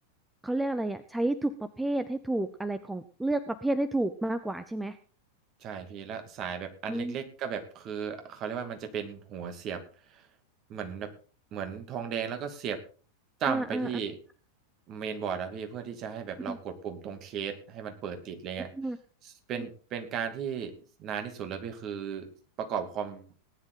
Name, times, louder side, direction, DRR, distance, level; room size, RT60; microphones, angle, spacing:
voice 1, 0.4-5.0 6.9-7.2 13.5-13.9 16.5-16.6 18.7-19.0, right 1 dB, 5° right, 11 dB, 0.9 m, -30 dB
voice 2, 5.6-9.8 10.1-10.2 10.7-11.1 11.5-12.8 13.4-14.2 14.9-18.7 19.2-22.3 22.6-23.3, right 7 dB, 35° right, 7 dB, 2.6 m, -35 dB
18.5 x 10.5 x 3.9 m, 0.38 s
figure-of-eight pair, 90°, 0 cm